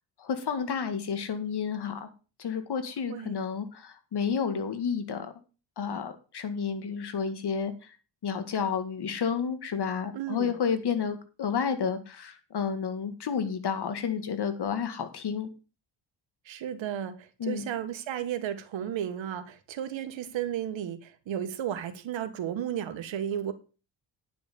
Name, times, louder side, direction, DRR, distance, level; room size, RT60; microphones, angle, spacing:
voice 1, 0.2-2.1 2.4-5.3 5.8-7.7 8.2-15.5 17.4-17.6, left 6 dB, 60° left, 2.0 m, -31 dB
voice 2, 10.1-10.6 16.4-23.5, right 10 dB, 80° right, 1.6 m, -34 dB
10.0 x 6.1 x 6.8 m
cardioid pair, 90°, 45 cm